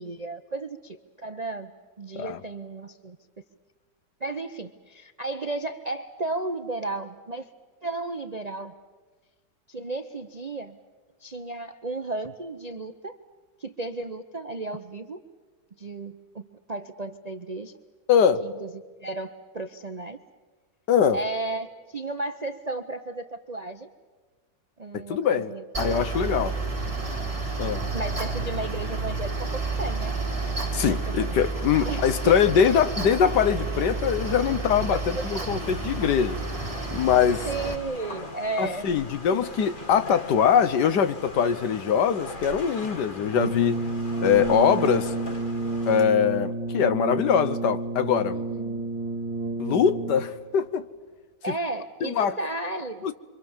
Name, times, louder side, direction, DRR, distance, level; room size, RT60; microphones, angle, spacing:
voice 1, 0.0-1.7 2.0-3.2 4.2-7.5 7.8-8.7 9.7-10.8 11.2-13.2 13.6-15.2 15.8-16.4 16.7-17.7 18.4-20.2 21.1-23.9 24.8-26.3 27.9-30.2 30.9-31.4 31.8-33.1 34.9-35.3 37.5-38.9 39.3-39.4 48.3-48.9 51.4-53.1, right 2 dB, 40° right, 0.5 m, -34 dB
voice 2, 18.1-18.5 20.9-21.2 24.9-26.5 27.6-27.9 30.7-36.4 36.9-37.5 38.6-43.8 44.2-45.1 45.9-48.4 49.6-50.9 52.0-52.3 53.0-53.1, left 7 dB, 70° left, 1.5 m, -23 dB
Mechanical fan, 25.7-37.7, right 3 dB, 20° right, 2.7 m, -30 dB
sound 1, 35.6-46.0, left 2 dB, 30° left, 1.5 m, -41 dB
Brass instrument, 43.3-50.5, right 2 dB, 80° right, 2.6 m, -30 dB
28.5 x 24.0 x 7.3 m
omnidirectional pair, 1.9 m